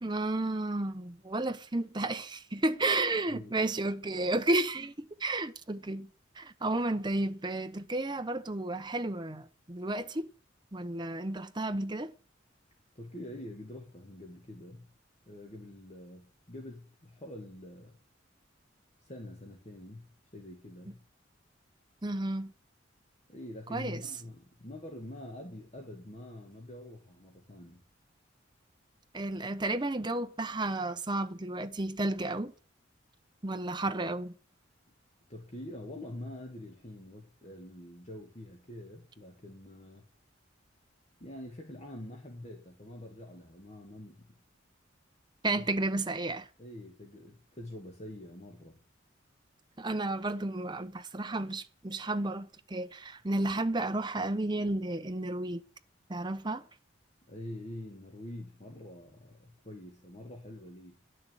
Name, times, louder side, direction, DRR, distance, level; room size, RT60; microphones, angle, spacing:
voice 1, 0.0-6.1 6.3-10.3 10.7-12.1 22.0-22.5 23.7-24.0 29.1-32.5 33.4-34.3 45.4-46.5 49.8-55.6 56.1-56.7, right 2 dB, 25° right, 0.9 m, -32 dB
voice 2, 13.0-14.9 15.3-18.0 19.0-21.0 23.3-27.8 35.3-40.0 41.2-44.3 45.5-45.6 46.6-48.8 57.3-61.0, left 1 dB, 35° left, 2.0 m, -45 dB
11.5 x 6.6 x 9.1 m
head